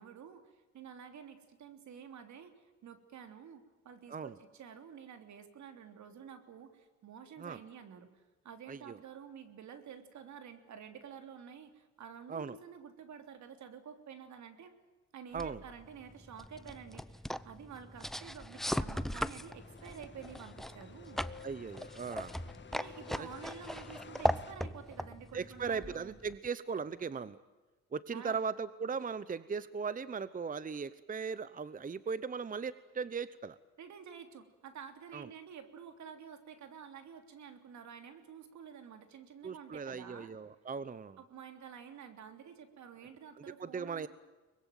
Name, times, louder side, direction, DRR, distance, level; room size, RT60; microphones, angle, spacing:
voice 1, 0.0-8.1 8.4-14.8 15.1-21.3 22.7-26.2 28.1-28.4 33.8-40.3 41.2-44.1, right 7 dB, 70° right, 8 dB, 3.3 m, -50 dB
sound 1, 15.4-26.5, equal, ahead, 0.8 m, -39 dB
sound 2, 18.5-24.5, left 7 dB, 35° left, 1.9 m, -53 dB
voice 2, 21.4-22.4 23.2-23.3 25.3-27.4 27.9-33.6 35.1-35.3 39.4-41.2 43.6-44.1, right 5 dB, 25° right, 16 dB, 0.8 m, -38 dB
24.0 x 21.0 x 9.2 m, 1.2 s
cardioid pair, 90°, 30 cm